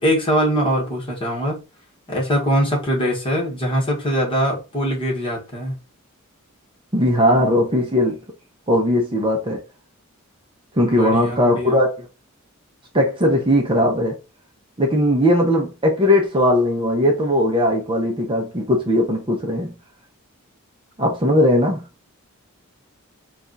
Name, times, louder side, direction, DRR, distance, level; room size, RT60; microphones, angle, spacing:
voice 1, 0.0-1.6 2.1-5.7 10.8-11.8, equal, 25° left, 1.5 m, -22 dB
voice 2, 6.9-8.2 8.7-9.6 10.7-12.1 12.9-14.2 14.8-19.7 21.0-21.9, left 1 dB, 25° right, 0.7 m, -18 dB
3.4 x 2.4 x 3.9 m
head